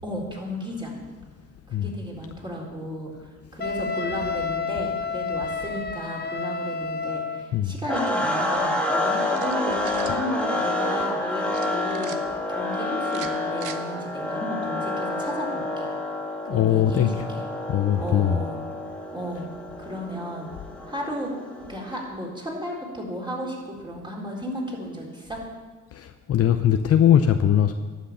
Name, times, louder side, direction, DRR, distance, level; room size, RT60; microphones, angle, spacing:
voice 1, 0.0-1.0 1.7-12.2 12.5-15.9 16.5-17.5 18.0-18.6 19.1-19.5 19.8-20.5 20.9-21.3 21.7-25.4, equal, 15° right, -2 dB, 4.0 m, -34 dB
Wind instrument woodwind instrument, 3.6-7.5, left 5 dB, 35° left, 1.0 m, -30 dB
sound 1, 7.9-22.0, left 2 dB, 5° left, 1.8 m, -28 dB
sound 2, 9.3-10.2 11.5-12.2 13.0-13.8, right 9 dB, 80° right, 0.9 m, -40 dB
voice 2, 16.5-17.1 17.7-18.4 25.9-27.7, left 10 dB, 50° left, 7 dB, 0.6 m, -20 dB
11.5 x 6.4 x 8.9 m, 1.4 s
cardioid pair, 90°, 30 cm